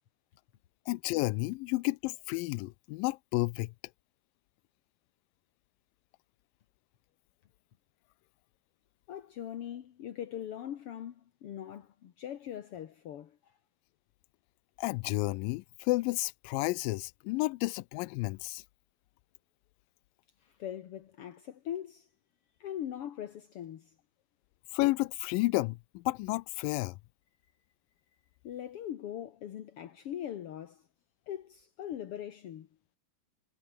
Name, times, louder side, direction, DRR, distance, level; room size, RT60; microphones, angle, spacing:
voice 1, 0.9-3.7 14.8-18.6 24.7-27.0, left 22 dB, 80° left, 2.1 m, -31 dB
voice 2, 9.1-13.4 20.4-22.1 22.6-23.9 28.4-30.8 31.3-32.7, left 10 dB, 60° left, 1.5 m, -41 dB
omnidirectional pair, 4.3 m